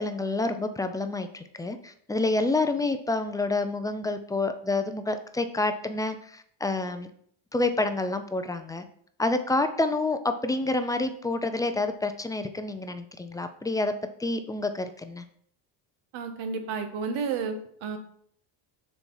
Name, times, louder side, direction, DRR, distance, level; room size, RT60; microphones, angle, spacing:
voice 1, 0.0-7.1 7.5-8.8 9.2-13.9 14.2-15.2, left 2 dB, 10° left, 8 dB, 0.4 m, -28 dB
voice 2, 16.1-18.0, right 5 dB, 75° right, 7 dB, 1.3 m, -31 dB
6.7 x 4.2 x 4.6 m, 0.63 s
cardioid pair, 120°, 48 cm